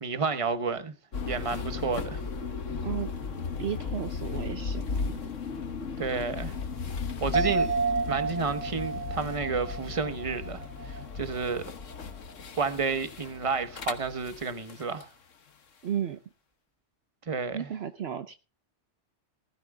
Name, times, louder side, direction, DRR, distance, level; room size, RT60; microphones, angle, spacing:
voice 1, 0.0-0.9 1.2-2.2 6.0-6.6 7.2-7.7 8.1-11.7 12.6-15.1 17.3-17.7, right 5 dB, 30° right, 1.2 m, -31 dB
sound 1, 1.1-15.1, left 5 dB, 90° left, 1.6 m, -36 dB
voice 2, 3.6-5.3 15.8-16.2 17.5-18.4, right 9 dB, 60° right, 1.0 m, -34 dB
sound 2, 7.3-11.0 11.4-11.5, right 4 dB, 20° left, 1.9 m, -31 dB
19.5 x 13.0 x 2.3 m
omnidirectional pair, 1.2 m